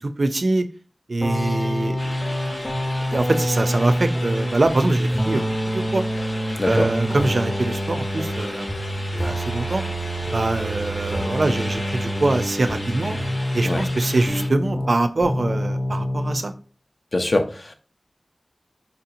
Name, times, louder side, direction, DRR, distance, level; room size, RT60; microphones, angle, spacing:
voice 1, 0.0-0.7 1.1-2.0 3.1-6.0 6.6-8.7 9.2-9.8 10.3-13.2 13.5-16.5, right 2 dB, 75° right, 9 dB, 0.3 m, -23 dB
sound 1, 1.2-14.9 15.2-16.4, equal, 20° left, 0.7 m, -26 dB
sound 2, 2.0-14.5, left 1 dB, 85° left, 1.6 m, -36 dB
voice 2, 17.1-17.7, left 2 dB, 60° left, 6 dB, 0.5 m, -22 dB
4.1 x 2.8 x 2.5 m, 0.36 s
wide cardioid pair, 65°, 0 cm